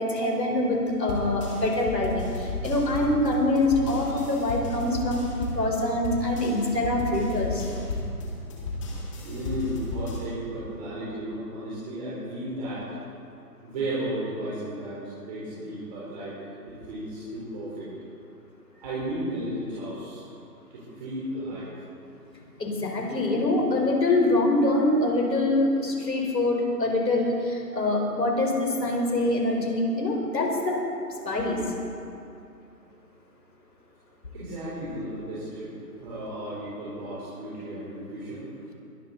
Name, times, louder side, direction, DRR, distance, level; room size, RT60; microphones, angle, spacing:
voice 1, 0.0-5.3 5.5-7.7 22.6-30.8 31.3-31.6, left 2 dB, 80° left, 0 dB, 4.5 m, -24 dB
sound 1, 1.1-10.2, left 2 dB, 20° left, 2.0 m, -33 dB
voice 2, 9.0-13.1 13.6-16.3 16.6-17.9 18.8-20.2 20.7-21.7 34.3-35.7 36.0-38.5, right 1 dB, 25° right, -10 dB, 4.0 m, -34 dB
21.5 x 13.0 x 4.0 m, 2.6 s
hypercardioid pair, 160°, 49 cm